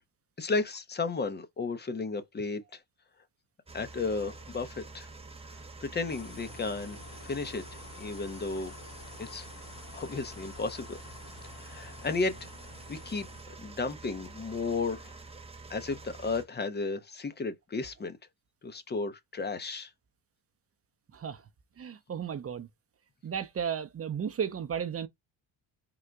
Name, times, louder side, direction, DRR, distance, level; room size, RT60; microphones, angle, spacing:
voice 1, 0.4-2.8 3.7-5.1 5.8-7.0 7.3-7.6 8.0-8.7 9.2-9.5 9.9-11.0 11.6-12.5 12.9-15.2 15.7-18.2 18.6-19.9, left 3 dB, 25° left, 0.6 m, -33 dB
sound 1, 3.7-16.4, right 3 dB, 15° right, 1.0 m, -47 dB
sound 2, 6.1-13.4, left 4 dB, 45° left, 1.3 m, -50 dB
voice 2, 21.1-21.4 21.8-22.7 23.2-25.1, right 8 dB, 30° right, 0.6 m, -34 dB
3.8 x 2.1 x 4.5 m
cardioid pair, 120°, 45 cm